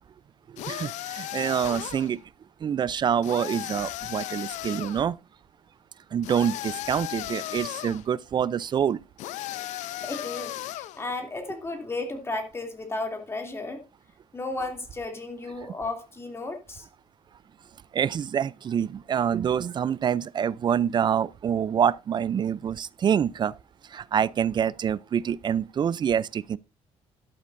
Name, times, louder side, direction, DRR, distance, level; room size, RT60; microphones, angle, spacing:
sound 1, 0.6-2.1 3.2-5.0 6.2-8.0 9.2-11.0, left 14 dB, 85° left, 0.6 m, -35 dB
voice 1, 0.6-2.2 2.6-5.2 6.1-9.0 17.9-23.5 23.9-26.6, right 8 dB, 40° right, 0.5 m, -26 dB
voice 2, 10.0-13.8 14.3-16.9, left 2 dB, 20° left, 2.7 m, -34 dB
12.0 x 12.0 x 2.6 m
cardioid pair, 130°, 12 cm